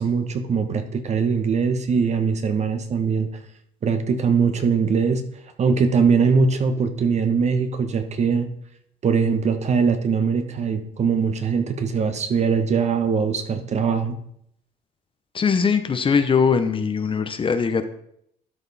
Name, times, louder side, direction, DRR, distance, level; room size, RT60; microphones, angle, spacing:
voice 1, 0.0-3.3 3.8-5.2 5.6-8.5 9.0-14.2, right 5 dB, 40° right, 8 dB, 1.1 m, -21 dB
voice 2, 15.3-17.9, left 6 dB, 30° left, 9 dB, 0.8 m, -21 dB
12.5 x 5.3 x 4.1 m, 0.70 s
cardioid pair, 110°, 17 cm